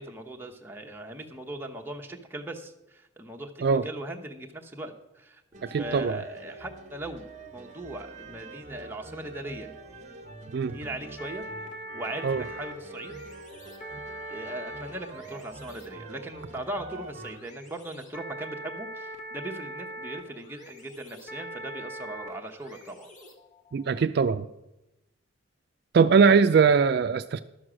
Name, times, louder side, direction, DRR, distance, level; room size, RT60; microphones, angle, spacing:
voice 1, 0.0-9.7 10.7-11.4 11.9-13.2 14.3-23.1, right 1 dB, 10° right, 2 dB, 0.9 m, -39 dB
sound 1, 5.5-17.4, right 2 dB, 35° right, 0.9 m, -45 dB
voice 2, 5.7-6.2 10.5-10.7 12.2-12.4 23.7-24.5 25.9-27.4, right 5 dB, 55° right, 10 dB, 0.3 m, -21 dB
sound 2, 11.2-24.0, equal, 40° left, 1.5 m, -42 dB
12.0 x 6.3 x 6.2 m, 0.95 s
head